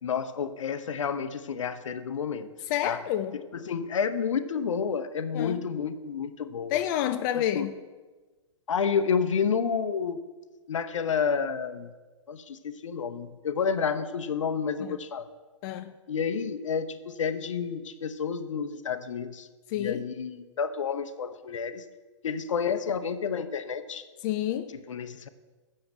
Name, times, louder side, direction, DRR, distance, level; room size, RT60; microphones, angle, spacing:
voice 1, 0.0-2.5 2.8-3.0 3.5-6.8 7.3-7.7 8.7-10.2 10.7-11.9 12.3-15.3 16.1-19.5 19.8-21.8 22.2-24.0 24.9-25.3, left 6 dB, 75° left, 0.8 m, -30 dB
voice 2, 2.7-3.4 5.3-5.6 6.7-7.8 14.8-15.0 15.6-15.9 19.7-20.0 24.2-24.7, left 11 dB, 40° left, 0.5 m, -29 dB
7.8 x 6.5 x 7.6 m
hypercardioid pair, 125°, 16 cm